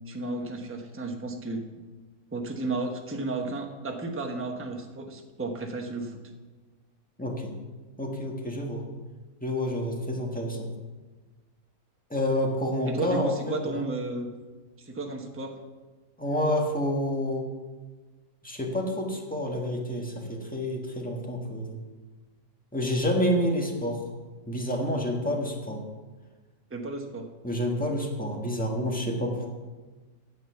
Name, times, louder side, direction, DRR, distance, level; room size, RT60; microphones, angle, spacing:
voice 1, 0.1-1.8 2.3-6.2 12.9-14.3 14.8-15.6 26.7-27.3, right 3 dB, 10° right, 3 dB, 0.9 m, -33 dB
voice 2, 7.2-7.5 8.0-8.9 9.4-10.7 12.1-13.8 16.2-17.4 18.4-21.8 22.7-24.0 24.5-25.8 27.4-29.5, left 1 dB, 5° left, 0 dB, 1.5 m, -28 dB
9.7 x 7.5 x 7.0 m, 1.3 s
omnidirectional pair, 1.6 m